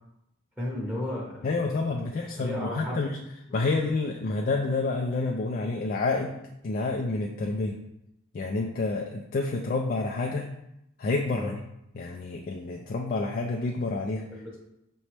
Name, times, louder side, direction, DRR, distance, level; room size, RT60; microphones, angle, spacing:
voice 1, 0.6-1.7 2.3-3.0 3.5-3.7 11.4-11.5 14.3-14.6, left 1 dB, 10° right, -5 dB, 1.0 m, -34 dB
voice 2, 1.4-3.2 3.5-6.4 6.6-7.8 8.3-10.5 11.0-11.5 11.9-14.2, left 3 dB, 40° left, 1 dB, 0.4 m, -28 dB
5.3 x 3.2 x 3.0 m, 0.84 s
head